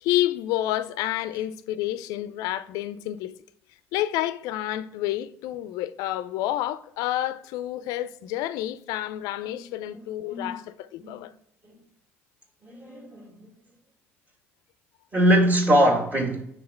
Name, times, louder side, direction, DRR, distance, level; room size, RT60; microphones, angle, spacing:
voice 1, 0.0-3.3 3.9-11.3, left 14 dB, 70° left, 0.4 m, -29 dB
voice 2, 9.9-10.5 11.0-11.2 11.6-11.7 12.6-13.5 15.1-16.4, equal, 25° right, 2.0 m, -23 dB
5.6 x 3.7 x 5.6 m
hypercardioid pair, 65°, 6 cm